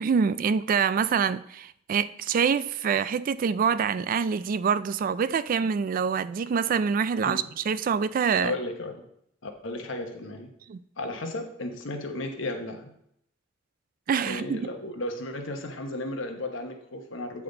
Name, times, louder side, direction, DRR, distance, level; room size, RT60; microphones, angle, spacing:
voice 1, 0.0-8.5 10.7-10.8 14.1-14.7, right 6 dB, 45° right, 0.3 m, -25 dB
voice 2, 8.4-9.0 9.4-10.5 11.0-12.9 14.3-17.4, left 2 dB, 80° left, 1.0 m, -34 dB
8.5 x 5.8 x 3.9 m
head